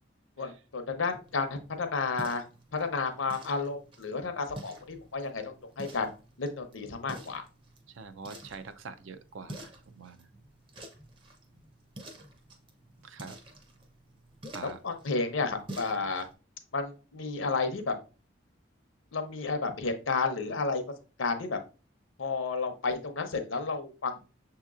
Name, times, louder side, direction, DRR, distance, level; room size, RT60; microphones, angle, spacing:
voice 1, 0.4-2.4 2.7-6.1 6.4-7.4 14.6-16.3 16.7-17.9 19.1-20.8 21.2-21.6 22.2-24.2, left 4 dB, 80° left, 7 dB, 0.7 m, -31 dB
sound 1, 1.1-16.3, right 1 dB, 25° right, 0.6 m, -49 dB
voice 2, 7.9-10.3 13.0-13.4 14.5-14.8, right 4 dB, 80° right, 10 dB, 0.5 m, -45 dB
6.5 x 2.9 x 2.4 m, 0.34 s
head